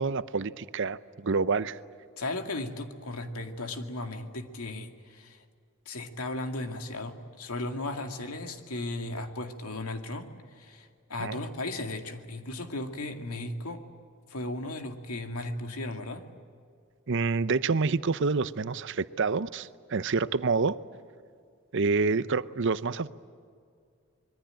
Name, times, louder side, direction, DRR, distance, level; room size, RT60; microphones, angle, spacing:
voice 1, 0.0-1.8 11.2-11.4 17.1-20.8 21.7-23.1, right 4 dB, 60° right, 15 dB, 0.7 m, -27 dB
voice 2, 2.2-5.4 5.9-13.9 14.3-16.3, left 2 dB, 90° left, 6 dB, 2.2 m, -36 dB
25.5 x 22.0 x 9.0 m, 2.2 s
head